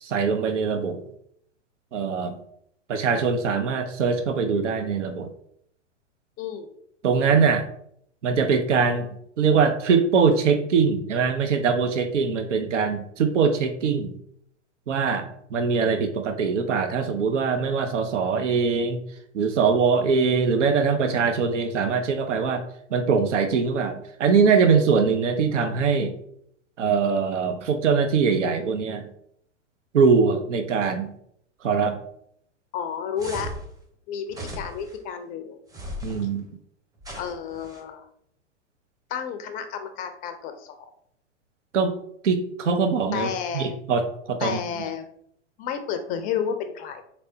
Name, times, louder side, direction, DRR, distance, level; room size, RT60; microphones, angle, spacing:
voice 1, 0.0-1.0 1.9-2.3 2.9-5.3 7.0-7.6 8.2-9.0 9.4-14.1 14.9-15.3 15.5-19.0 19.3-22.6 22.9-26.1 26.8-29.0 29.9-31.1 31.6-32.0 36.0-36.4 41.7-41.9 42.2-43.3 43.5-44.0 44.3-44.6, right 5 dB, 80° right, 7 dB, 0.7 m, -22 dB
voice 2, 6.4-6.7 32.7-33.5 34.1-35.6 37.1-38.1 39.1-40.9 43.1-43.7 44.4-45.0 45.6-47.0, left 7 dB, 25° left, 8 dB, 0.4 m, -31 dB
sound 1, 33.2-33.7 34.3-35.0 35.7-36.3 37.0-37.8, equal, 10° right, 0.7 m, -37 dB
4.2 x 3.3 x 2.7 m, 0.69 s
hypercardioid pair, 105°, 36 cm